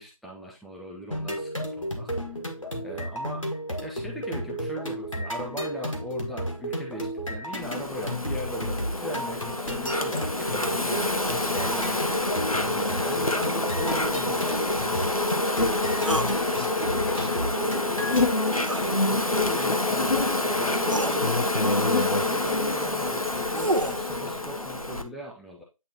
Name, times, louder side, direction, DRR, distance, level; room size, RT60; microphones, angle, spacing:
voice 1, 0.0-2.4 2.8-15.0 19.1-21.5 21.8-25.6, equal, ahead, -1 dB, 0.4 m, -39 dB
sound 1, 1.1-18.3, equal, 65° left, 1.6 m, -33 dB
Insect, 7.6-25.0, left 2 dB, 90° left, 0.9 m, -27 dB
voice 2, 12.7-13.2 15.5-18.3, equal, 40° left, 5 dB, 0.9 m, -40 dB
sound 2, 16.1-16.3 18.6-18.9 20.2-20.3 20.9-21.2 23.2-24.0, right 1 dB, 60° right, 0.7 m, -28 dB
8.6 x 3.0 x 4.2 m, 0.27 s
figure-of-eight pair, 180°, 18 cm